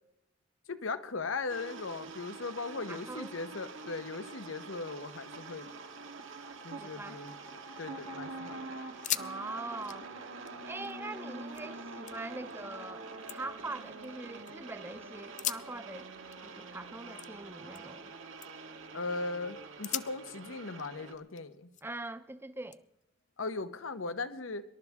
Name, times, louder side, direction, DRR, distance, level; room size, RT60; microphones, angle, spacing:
voice 1, 0.7-5.7 6.6-7.3 7.8-8.6 18.9-21.7 23.4-24.6, left 3 dB, 75° left, 0.9 m, -38 dB
sound 1, 1.5-21.1, right 3 dB, 70° right, 1.4 m, -45 dB
voice 2, 2.9-3.3 6.8-7.2 9.1-10.1 10.7-16.1 16.4-18.1 21.8-22.8, right 2 dB, 10° right, 0.6 m, -42 dB
sound 2, 7.3-8.1 8.4-8.5 8.9-9.3 9.6-11.7 12.1-12.6 13.0-14.5 15.2-18.1 18.4-18.8 19.2-19.4 19.8-22.1 22.7-23.9, left 11 dB, 40° left, 0.5 m, -42 dB
25.5 x 12.0 x 3.6 m
head